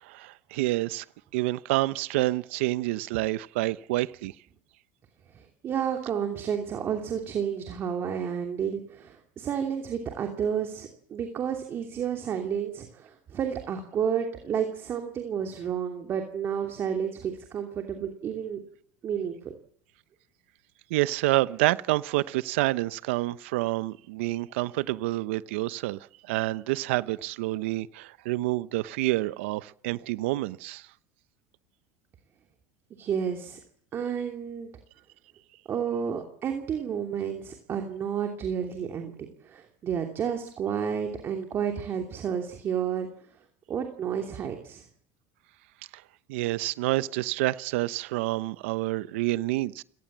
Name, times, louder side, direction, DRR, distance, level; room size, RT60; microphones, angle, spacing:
voice 1, 0.0-1.0 1.3-4.3 20.9-30.9 45.9-46.0 46.3-49.8, right 18 dB, 80° right, 0.9 m, -28 dB
voice 2, 5.3-18.6 19.0-19.5 33.0-33.6 33.9-34.7 35.7-39.1 39.4-43.1 43.7-44.8, right 8 dB, 35° right, 2.9 m, -31 dB
29.0 x 18.5 x 7.5 m
supercardioid pair, 120°, 7 cm